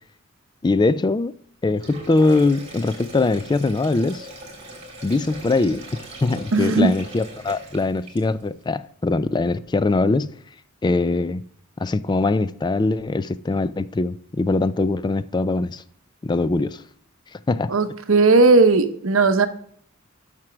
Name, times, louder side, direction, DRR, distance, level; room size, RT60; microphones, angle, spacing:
voice 1, 0.6-1.3 1.6-4.3 5.0-5.8 6.2-10.3 10.8-11.4 11.8-15.8 16.2-16.8 17.5-17.7, left 3 dB, 20° left, 0.3 m, -22 dB
Sink (filling or washing), 1.7-8.5, right 1 dB, 30° right, 2.3 m, -40 dB
voice 2, 6.5-6.9 17.7-19.5, right 3 dB, 65° right, 0.8 m, -16 dB
7.6 x 6.0 x 6.1 m
head